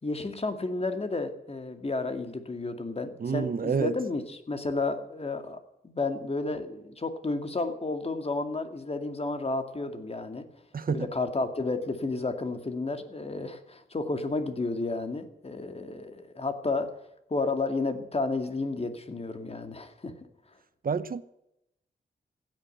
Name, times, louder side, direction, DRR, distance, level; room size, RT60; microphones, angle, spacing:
voice 1, 0.0-5.6 5.8-10.4 10.9-16.9 17.3-20.1, left 3 dB, 35° left, 2.2 m, -32 dB
voice 2, 3.2-4.0 10.7-11.1 20.8-21.2, right 6 dB, 55° right, 0.9 m, -28 dB
15.5 x 9.6 x 9.0 m
wide cardioid pair, 90°, 18 cm